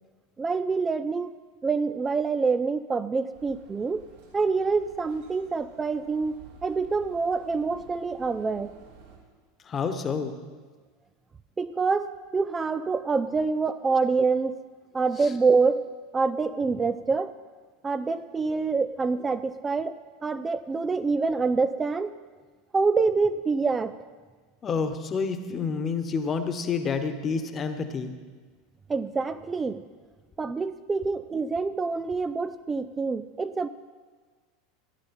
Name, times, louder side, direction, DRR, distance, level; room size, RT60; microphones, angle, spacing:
voice 1, 0.4-1.4 1.6-4.1 4.3-8.7 11.6-14.6 14.9-15.9 16.1-17.3 17.8-22.2 22.7-23.9 28.9-29.8 30.4-33.7, right 4 dB, 20° right, 12 dB, 0.5 m, -26 dB
sound 1, 3.3-9.2, right 5 dB, 60° right, 4.2 m, -52 dB
voice 2, 9.6-10.3 15.2-15.3 24.6-28.1, left 5 dB, 30° left, 8 dB, 1.3 m, -29 dB
16.0 x 11.0 x 4.4 m, 1.5 s
figure-of-eight pair, 80°, 0 cm